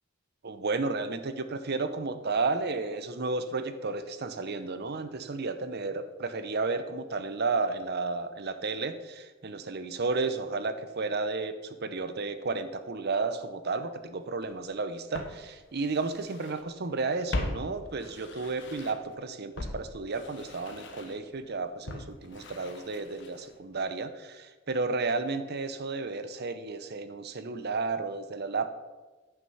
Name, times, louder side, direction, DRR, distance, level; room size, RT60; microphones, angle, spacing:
voice 1, 0.4-28.7, right 3 dB, 55° right, 10 dB, 0.8 m, -32 dB
Walk footsteps, 14.4-14.5 15.1-16.6 16.9-19.2 19.6-23.6 23.9-24.0, left 1 dB, 65° left, 1.1 m, -40 dB
11.0 x 6.0 x 5.6 m, 1.3 s
head